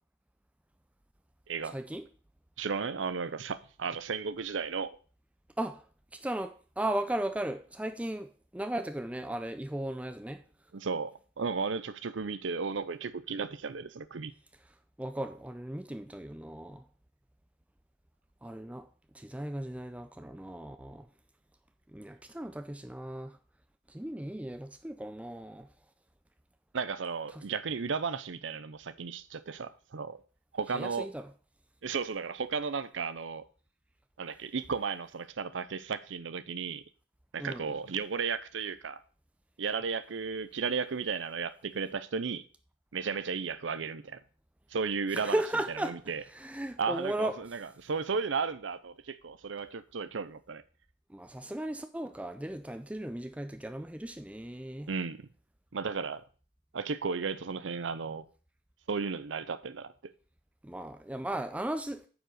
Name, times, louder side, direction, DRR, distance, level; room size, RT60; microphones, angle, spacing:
voice 1, 1.6-2.0 5.6-5.8 6.1-10.4 15.0-16.8 18.4-18.9 19.1-21.1 21.9-23.4 23.9-25.7 27.3-27.4 30.7-31.3 37.4-37.7 45.1-46.0 46.2-47.4 51.1-54.9 60.6-62.0, right 1 dB, 5° right, 0.5 m, -36 dB
voice 2, 2.6-5.0 10.7-14.3 26.7-30.2 30.5-31.1 31.8-33.4 34.2-36.8 37.3-39.0 39.6-42.4 42.9-44.2 44.7-45.4 45.9-46.2 46.8-50.6 54.9-55.3 55.7-56.2 56.7-58.3 58.9-60.1, right 5 dB, 75° right, 0.6 m, -34 dB
9.1 x 4.9 x 6.4 m
head